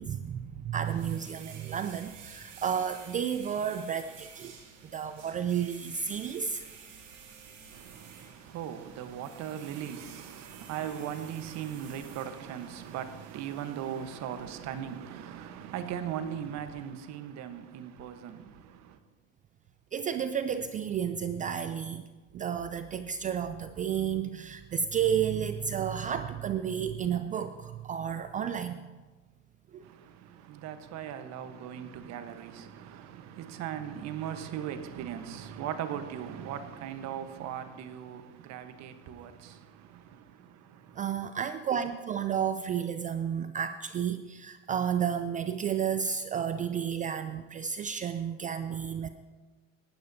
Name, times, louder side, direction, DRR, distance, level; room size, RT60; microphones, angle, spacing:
voice 1, 0.0-4.5 4.9-6.7 19.9-22.0 22.3-28.9 29.7-29.8 41.0-49.1, right 8 dB, 20° right, 0.4 m, -32 dB
sound 1, 0.8-16.9, right 6 dB, 65° right, 3.4 m, -52 dB
voice 2, 7.7-19.0 29.8-41.0, right 9 dB, 45° right, 1.1 m, -39 dB
18.5 x 12.0 x 2.7 m
hypercardioid pair, 105°, 38 cm